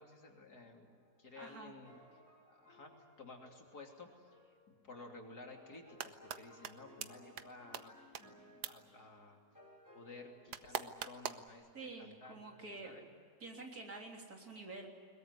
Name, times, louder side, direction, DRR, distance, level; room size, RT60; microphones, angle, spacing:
voice 1, 0.0-2.0 2.5-2.9 3.2-9.4 9.9-13.0, left 3 dB, 75° left, 1 dB, 3.6 m, -54 dB
sound 1, 0.8-10.9, left 1 dB, 10° left, 7.7 m, -62 dB
voice 2, 1.4-1.7 11.7-13.0 13.4-14.9, right 3 dB, 65° right, 1 dB, 4.0 m, -48 dB
sound 2, 5.7-6.4 6.6-6.7 7.0-7.1 7.4-7.5 7.7-7.8 8.1-8.2 8.6-8.7 10.5-11.5, right 9 dB, 80° right, 1.5 m, -40 dB
22.0 x 21.5 x 9.7 m, 2.1 s
omnidirectional pair, 1.7 m